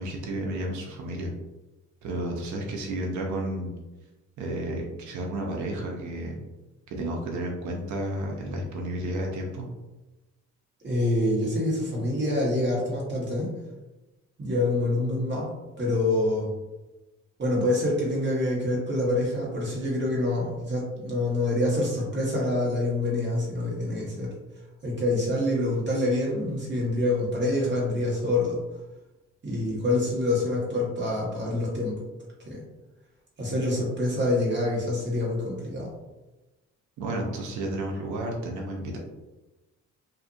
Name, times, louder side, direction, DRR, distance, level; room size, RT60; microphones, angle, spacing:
voice 1, 0.0-1.3 2.0-3.7 4.4-6.4 6.9-9.7 37.0-39.0, right 1 dB, 70° right, 0 dB, 0.6 m, -32 dB
voice 2, 10.8-13.5 14.4-15.5 15.8-16.5 17.4-24.3 24.8-28.6 29.4-31.9 32.5-32.6 33.4-35.9, left 1 dB, 35° right, -4 dB, 1.1 m, -26 dB
2.5 x 2.5 x 2.5 m, 1.1 s
cardioid pair, 90°, 30 cm